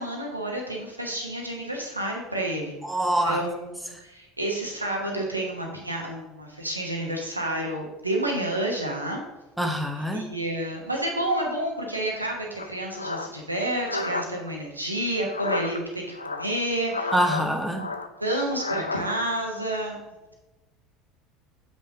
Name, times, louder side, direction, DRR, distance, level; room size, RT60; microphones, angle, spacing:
voice 1, 0.0-2.8 3.2-9.2 10.1-17.1 18.2-20.1, right 1 dB, 90° right, 0 dB, 1.1 m, -29 dB
voice 2, 2.8-3.4 9.6-10.3 17.1-17.9, equal, 5° right, 3 dB, 1.0 m, -25 dB
sound 1, 12.6-14.3 15.2-15.8 16.1-17.5 17.7-19.0, left 3 dB, 85° left, 0.4 m, -31 dB
7.5 x 5.4 x 2.7 m, 1.1 s
figure-of-eight pair, 70°, 0 cm